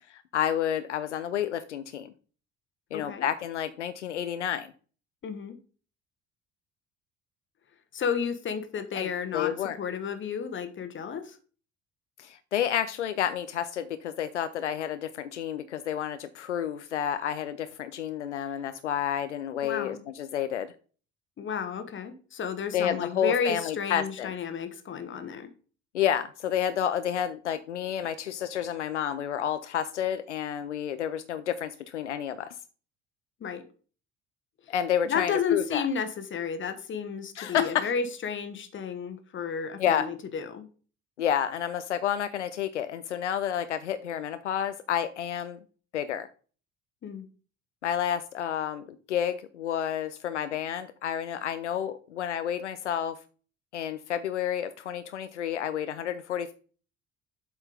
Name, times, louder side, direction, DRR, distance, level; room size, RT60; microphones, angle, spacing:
voice 1, 0.1-2.1 2.9-4.7 8.9-9.8 12.2-20.7 22.7-24.3 25.9-32.6 34.7-35.9 37.4-37.9 39.8-40.1 41.2-45.6 45.9-46.3 47.8-53.2 53.7-56.5, left 9 dB, 85° left, 12 dB, 0.5 m, -30 dB
voice 2, 2.9-3.2 5.2-5.6 7.9-11.4 19.6-20.0 21.4-25.5 33.4-33.6 35.1-40.7 47.0-47.2, left 6 dB, 35° left, 10 dB, 1.2 m, -32 dB
7.5 x 4.4 x 5.1 m, 0.40 s
figure-of-eight pair, 55°, 35 cm